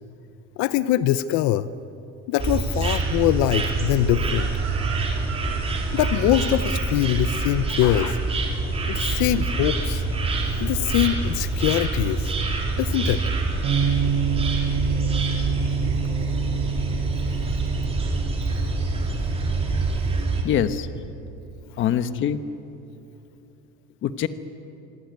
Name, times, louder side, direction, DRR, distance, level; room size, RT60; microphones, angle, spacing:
voice 1, 0.6-1.7 2.3-4.5 5.9-8.2 8.9-10.0 10.6-12.3 12.8-13.2, left 13 dB, 75° left, 14 dB, 0.8 m, -23 dB
sound 1, 2.4-20.4, right 3 dB, 20° right, 3.7 m, -26 dB
Chicken rooster, 4.1-9.0 9.3-9.7, right 8 dB, 80° right, 3.9 m, -40 dB
Bass guitar, 13.6-19.9, right 7 dB, 50° right, 3.8 m, -28 dB
voice 2, 20.4-20.9 21.8-22.4 24.0-24.3, left 9 dB, 40° left, 11 dB, 1.1 m, -23 dB
25.0 x 24.5 x 9.4 m, 2.9 s
cardioid pair, 180°, 29 cm